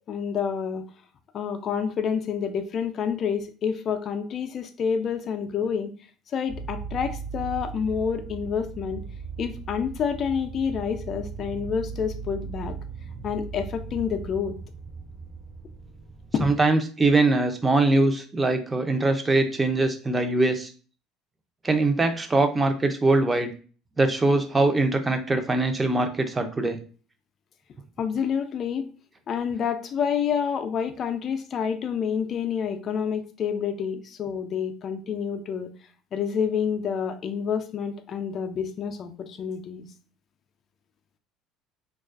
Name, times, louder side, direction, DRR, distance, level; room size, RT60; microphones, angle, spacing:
voice 1, 0.1-0.9 1.3-5.9 6.3-9.0 9.4-12.8 13.2-14.6 16.3-16.5 28.0-28.9 29.3-35.7 36.1-39.9, left 7 dB, 45° left, 6 dB, 0.3 m, -28 dB
sound 1, 6.5-16.7, right 5 dB, 65° right, 0.8 m, -38 dB
voice 2, 16.4-20.7 21.6-23.5 24.0-26.8, right 2 dB, 20° right, 7 dB, 0.5 m, -22 dB
2.4 x 2.3 x 2.3 m, 0.38 s
supercardioid pair, 85°, 0 cm